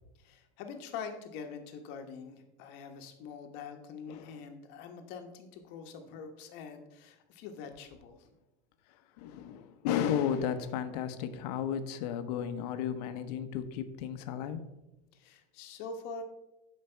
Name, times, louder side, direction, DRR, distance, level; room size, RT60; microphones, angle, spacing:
voice 1, 0.2-8.3 15.1-16.2, left 5 dB, 55° left, 5 dB, 1.2 m, -44 dB
voice 2, 4.1-4.4 9.2-14.6, left 9 dB, 80° left, 10 dB, 1.0 m, -34 dB
11.5 x 5.1 x 4.4 m, 0.94 s
cardioid pair, 155°, 20 cm